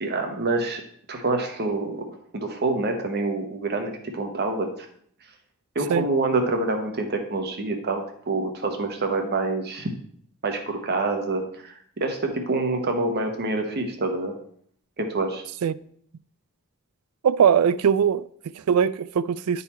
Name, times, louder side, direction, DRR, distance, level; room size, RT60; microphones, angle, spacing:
voice 1, 0.0-0.8 1.1-2.0 2.3-4.9 5.7-9.9 10.4-14.3 15.0-15.4, right 3 dB, 45° right, 1.0 m, -26 dB
voice 2, 17.2-19.6, right 7 dB, 80° right, 0.4 m, -21 dB
10.5 x 4.0 x 4.2 m
head